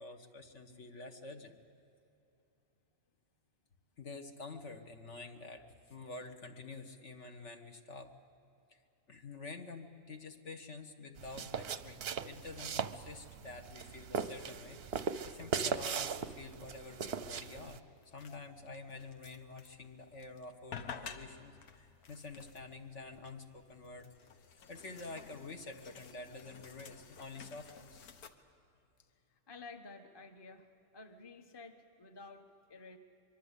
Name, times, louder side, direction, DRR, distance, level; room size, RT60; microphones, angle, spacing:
voice 1, 0.0-1.6 4.0-8.1 8.7-8.8 9.1-17.8 18.1-24.1 24.7-28.0, left 3 dB, 55° left, 5 dB, 1.6 m, -48 dB
sound 1, 11.2-17.8, right 6 dB, 50° right, 0.8 m, -39 dB
sound 2, 17.2-28.3, left 6 dB, 85° left, 1.6 m, -53 dB
voice 2, 29.0-30.6 30.9-33.0, left 3 dB, 20° left, 6 dB, 1.1 m, -52 dB
24.0 x 23.0 x 8.3 m, 2.7 s
omnidirectional pair, 1.5 m